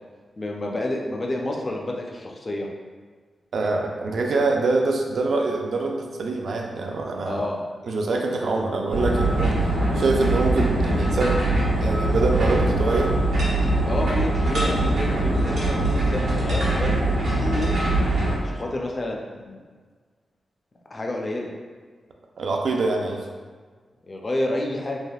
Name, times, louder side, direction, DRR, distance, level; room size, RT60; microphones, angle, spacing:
voice 1, 0.4-2.7 7.2-7.6 13.8-17.7 18.4-19.6 20.9-21.5 24.1-25.0, left 1 dB, 30° left, 0 dB, 0.4 m, -29 dB
voice 2, 3.5-7.5 7.8-11.4 11.8-13.1 22.4-23.3, right 3 dB, 65° right, 1 dB, 0.4 m, -25 dB
sound 1, 8.9-18.4, right 1 dB, 90° right, 0.9 m, -22 dB
3.4 x 2.4 x 2.3 m, 1.5 s
wide cardioid pair, 130°, 0 cm